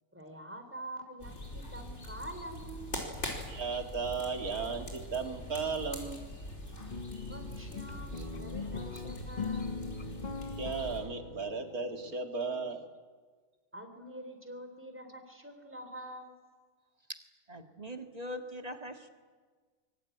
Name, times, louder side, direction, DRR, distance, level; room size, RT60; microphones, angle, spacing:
voice 1, 0.1-2.9 7.2-9.7 13.7-16.4, right 1 dB, 10° right, 6 dB, 3.5 m, -46 dB
sound 1, 1.2-11.0, left 1 dB, 50° left, 5.3 m, -43 dB
voice 2, 3.5-6.3 8.2-8.3 10.6-12.9, right 4 dB, 80° right, 5 dB, 2.9 m, -35 dB
sound 2, 6.8-12.2, left 4 dB, 35° left, 1.0 m, -41 dB
voice 3, 17.5-19.1, equal, 25° right, 6 dB, 1.9 m, -42 dB
24.5 x 23.0 x 9.3 m, 1.5 s
omnidirectional pair, 1.5 m